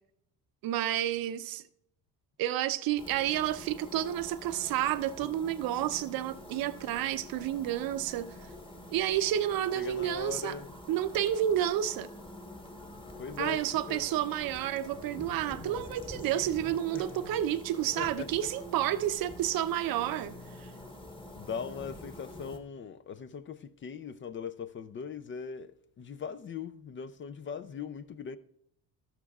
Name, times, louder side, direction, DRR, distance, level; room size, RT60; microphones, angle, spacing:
voice 1, 0.6-1.6 2.4-8.3 8.9-10.5 10.9-12.1 13.4-20.7, right 11 dB, 65° right, 0.8 m, -30 dB
sound 1, 3.0-22.6, left 1 dB, 15° left, 1.2 m, -46 dB
voice 2, 9.7-10.7 13.2-14.2 16.9-17.1 18.0-18.3 21.3-28.4, left 6 dB, 30° left, 0.5 m, -40 dB
12.5 x 11.5 x 2.4 m
cardioid pair, 100°, 38 cm